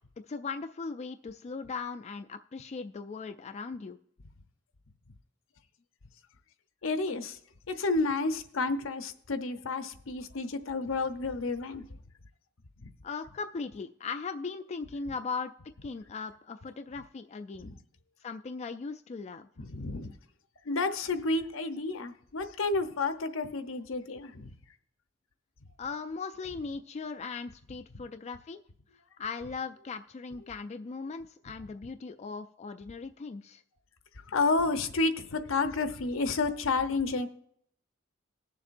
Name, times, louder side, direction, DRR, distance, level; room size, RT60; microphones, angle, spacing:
voice 1, 0.3-4.0 13.0-15.5 15.8-17.7 18.2-19.5 25.8-28.6 29.2-33.6, left 4 dB, 35° left, 7 dB, 0.3 m, -38 dB
voice 2, 6.8-7.4 7.7-11.8 12.8-12.9 17.6-17.8 19.6-20.1 20.6-24.5 34.3-37.3, left 3 dB, 75° left, 9 dB, 0.8 m, -30 dB
20.0 x 7.1 x 2.5 m, 0.68 s
head